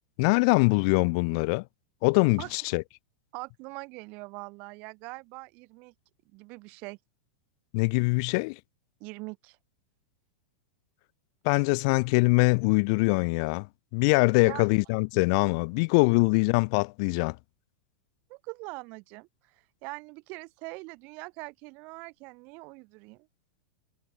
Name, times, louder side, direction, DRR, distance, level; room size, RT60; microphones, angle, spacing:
voice 1, 0.2-1.6 2.0-2.8 7.7-8.6 11.4-13.7 13.9-17.4, left 31 dB, 40° left, 4.9 m, -23 dB
voice 2, 3.3-5.9 6.3-7.0 9.0-9.6 14.4-14.7 18.3-19.3 19.8-23.3, right 27 dB, 35° right, 5.1 m, -42 dB
supercardioid pair, 170°, 4 cm